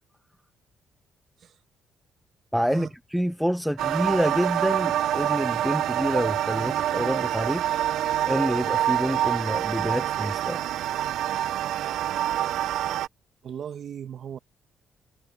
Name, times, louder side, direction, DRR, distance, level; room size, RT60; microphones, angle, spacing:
voice 1, 2.5-7.6 8.3-10.6, equal, ahead, 0.7 m, -27 dB
sound 1, 3.8-13.1, right 12 dB, 80° right, 0.4 m, -26 dB
voice 2, 13.4-14.4, right 8 dB, 60° right, 1.3 m, -37 dB
cardioid pair, 90°, 0 cm